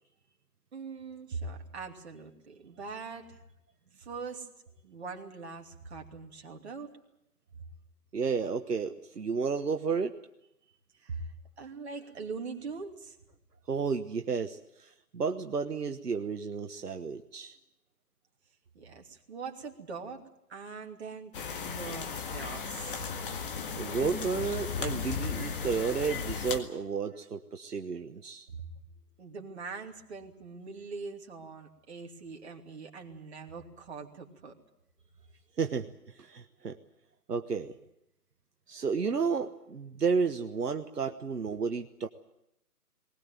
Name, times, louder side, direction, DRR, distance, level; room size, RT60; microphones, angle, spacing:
voice 1, 0.7-3.4 4.0-4.5 4.8-6.9 11.0-13.2 18.7-23.1 28.5-28.7 29.2-34.5, right 4 dB, 45° right, 2 dB, 2.9 m, -42 dB
voice 2, 8.1-10.2 13.7-17.6 23.7-28.5 35.6-36.8 37.3-37.8 38.7-42.1, right 5 dB, 75° right, 6 dB, 1.3 m, -32 dB
sound 1, 21.3-26.6, left 6 dB, 35° left, 1.8 m, -35 dB
20.0 x 20.0 x 9.2 m, 0.80 s
figure-of-eight pair, 145°, 47 cm